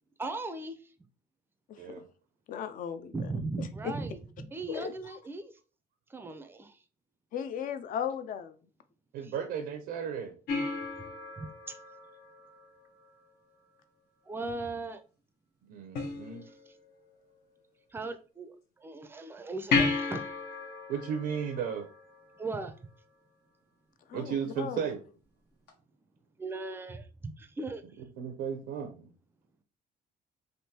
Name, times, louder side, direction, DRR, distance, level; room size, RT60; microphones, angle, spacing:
voice 1, 0.2-0.9 3.1-4.2 4.5-5.5 6.1-6.8 9.2-9.3 11.4-11.8 14.3-15.0 17.9-20.3 22.4-22.7 26.4-27.1 27.4-27.8, right 3 dB, 15° right, 0.4 m, -38 dB
voice 2, 1.7-2.0 2.5-3.3 3.6-3.9 4.7-4.9 7.3-8.6 24.1-24.8, left 8 dB, 55° left, 0.5 m, -36 dB
voice 3, 9.1-10.3 15.7-16.5 20.9-21.9 24.1-25.0 28.2-29.1, right 7 dB, 80° right, 0.5 m, -34 dB
sound 1, 10.5-13.1 15.9-16.9 19.7-22.6 25.7-25.8, left 4 dB, 75° left, 1.0 m, -34 dB
3.5 x 2.6 x 2.8 m
cardioid pair, 110°, 17 cm